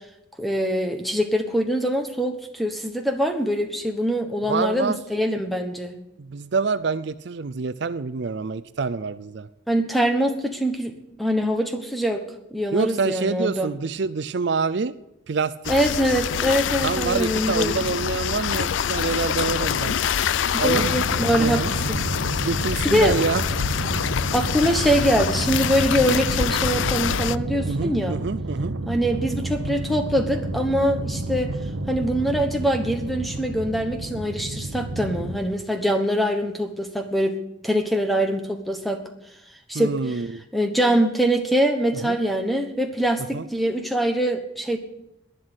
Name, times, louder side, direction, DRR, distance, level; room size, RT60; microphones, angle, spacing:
voice 1, 0.4-5.9 9.7-10.9 11.2-12.2 12.5-13.7 15.7-17.7 20.5-21.6 21.9-22.0 22.8-23.1 24.3-28.2 28.9-31.5 31.9-37.4 37.6-39.0 39.7-40.2 40.5-44.8, equal, ahead, 6 dB, 1.2 m, -23 dB
voice 2, 4.5-5.0 6.2-9.5 12.7-14.9 15.3-15.5 16.8-20.0 20.6-20.9 21.4-21.7 22.4-23.4 27.7-28.7 39.7-40.4 42.0-42.2 43.3-43.4, right 4 dB, 60° right, 15 dB, 0.5 m, -26 dB
sound 1, 15.6-27.4, left 8 dB, 70° left, 0.4 m, -25 dB
sound 2, 20.7-35.4, right 2 dB, 80° right, 0.9 m, -30 dB
11.5 x 10.5 x 8.0 m, 0.88 s
head